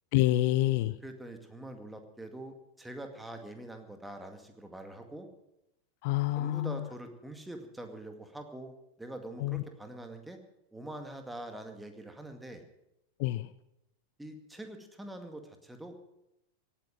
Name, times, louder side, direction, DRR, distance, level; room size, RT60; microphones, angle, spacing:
voice 1, 0.1-1.0 6.0-6.9 9.4-9.6 13.2-13.5, left 16 dB, 50° left, 16 dB, 0.5 m, -27 dB
voice 2, 1.0-5.3 6.4-10.4 10.7-12.6 14.2-16.0, right 1 dB, 5° right, 6 dB, 2.1 m, -44 dB
17.5 x 9.0 x 8.9 m, 0.87 s
figure-of-eight pair, 90°, 0 cm